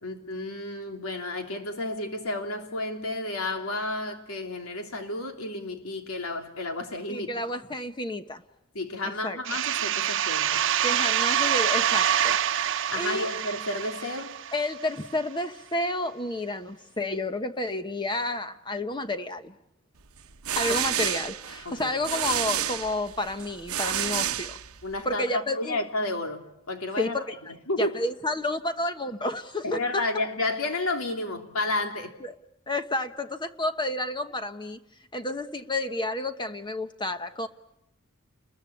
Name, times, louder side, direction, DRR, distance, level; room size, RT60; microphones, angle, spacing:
voice 1, 0.0-7.3 8.7-10.6 12.9-14.4 21.6-21.9 24.8-27.2 27.7-28.0 29.6-32.1, left 2 dB, 75° left, 3.2 m, -31 dB
voice 2, 7.1-8.4 9.2-9.4 10.8-12.4 12.9-13.3 14.5-19.5 20.6-24.6 25.0-25.8 27.0-27.2 27.8-30.0 32.2-32.3 32.7-34.8 35.1-37.5, left 2 dB, 20° left, 1.1 m, -30 dB
sound 1, 9.4-14.9, right 10 dB, 60° right, 1.0 m, -26 dB
sound 2, 20.2-25.1, right 10 dB, 85° right, 1.1 m, -30 dB
30.0 x 21.5 x 8.6 m
head